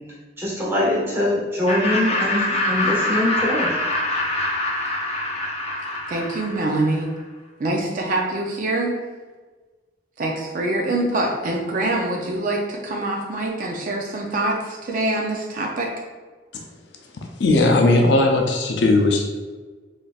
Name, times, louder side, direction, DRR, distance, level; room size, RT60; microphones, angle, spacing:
voice 1, 0.4-3.7, left 1 dB, 15° right, -6 dB, 1.2 m, -23 dB
Laughter, 1.7-7.0, left 1 dB, 35° left, 0.6 m, -24 dB
voice 2, 6.1-7.1 7.6-9.0 10.2-15.9, right 2 dB, 50° right, 0 dB, 0.4 m, -24 dB
voice 3, 17.4-19.2, left 2 dB, 85° left, 1 dB, 0.5 m, -17 dB
4.1 x 3.2 x 2.3 m, 1.3 s
head